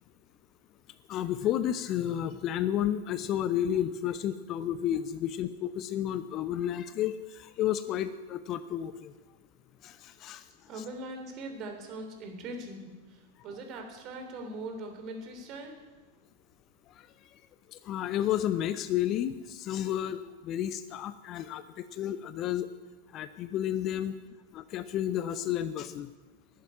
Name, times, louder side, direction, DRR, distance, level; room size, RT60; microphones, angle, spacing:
voice 1, 1.1-9.1 9.8-10.4 17.7-22.7 23.1-24.1 24.5-26.1, left 11 dB, 35° left, 13 dB, 0.7 m, -31 dB
voice 2, 10.7-15.8, right 2 dB, 35° right, 4 dB, 3.3 m, -41 dB
12.5 x 11.5 x 9.6 m, 1.3 s
figure-of-eight pair, 90°, 0 cm